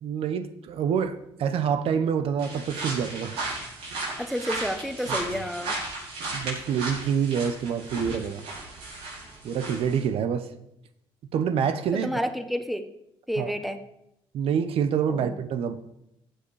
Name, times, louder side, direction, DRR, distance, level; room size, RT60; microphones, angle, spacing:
voice 1, 0.0-3.4 5.1-5.4 6.3-8.4 9.4-10.5 11.3-12.2 13.4-13.5 14.3-15.8, right 7 dB, 70° right, 11 dB, 1.0 m, -27 dB
sound 1, 2.4-10.0, right 2 dB, 90° right, 5.9 m, -35 dB
voice 2, 4.2-5.8 11.9-12.9 13.3-13.8 15.1-15.4, equal, ahead, 8 dB, 1.1 m, -30 dB
15.5 x 7.8 x 4.8 m, 0.82 s
cardioid pair, 105°, 10 cm